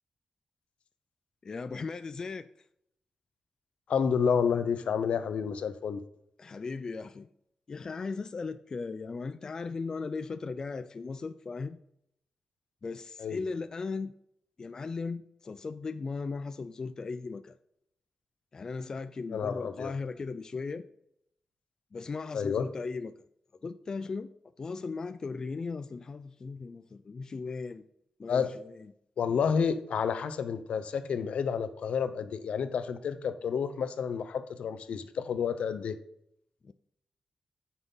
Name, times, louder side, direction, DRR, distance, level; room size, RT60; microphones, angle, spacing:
voice 1, 1.4-2.5 6.4-7.3 7.7-11.8 12.8-14.1 14.6-17.6 18.5-20.9 21.9-23.1 23.6-24.3 24.6-27.9 28.2-28.9 36.6-36.7, left 4 dB, 35° left, 0.3 m, -37 dB
voice 2, 3.9-6.0 13.2-13.4 19.3-19.9 22.3-22.7 28.3-28.5 29.2-36.0, left 6 dB, 80° left, 0.7 m, -30 dB
9.2 x 6.0 x 3.9 m
wide cardioid pair, 170°, 2 cm